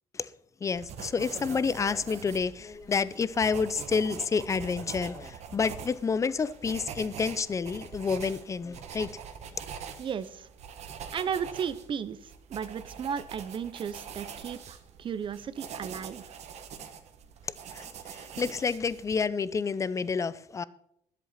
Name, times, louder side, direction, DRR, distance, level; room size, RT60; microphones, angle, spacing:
voice 1, 0.6-9.2 17.7-20.6, left 5 dB, 25° left, 0.5 m, -29 dB
sound 1, 0.7-19.2, right 7 dB, 60° right, 1.4 m, -44 dB
voice 2, 10.0-10.5 11.1-16.4, right 7 dB, 40° right, 0.8 m, -35 dB
11.0 x 7.5 x 5.8 m
cardioid pair, 115°, 13 cm